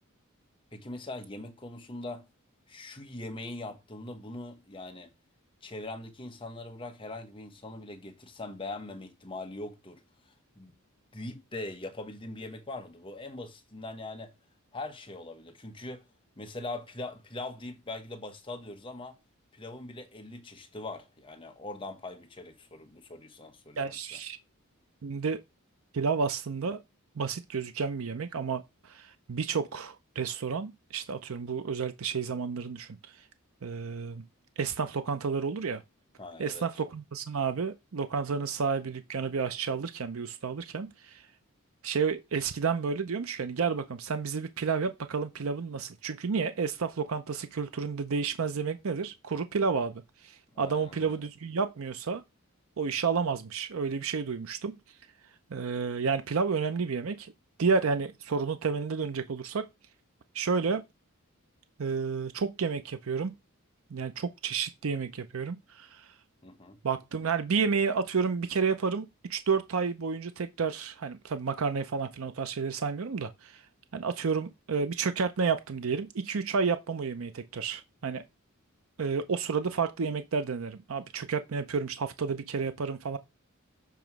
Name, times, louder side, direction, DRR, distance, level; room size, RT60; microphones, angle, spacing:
voice 1, 0.7-2.3 2.7-5.1 5.6-10.0 10.6-10.8 11.1-14.3 14.7-16.1 16.4-19.2 19.5-24.2 36.2-36.7 50.5-51.2 66.4-66.8, left 2 dB, 25° left, 1.1 m, -41 dB
voice 2, 23.8-24.4 25.0-25.4 25.9-26.8 27.2-33.0 33.6-34.2 34.6-35.8 36.4-41.2 41.8-52.2 52.8-54.7 55.5-57.3 57.6-59.7 60.3-60.8 61.8-63.3 63.9-66.1 66.8-73.6 73.9-78.2 79.0-83.2, right 5 dB, 75° right, 0.6 m, -31 dB
7.0 x 3.0 x 5.9 m
head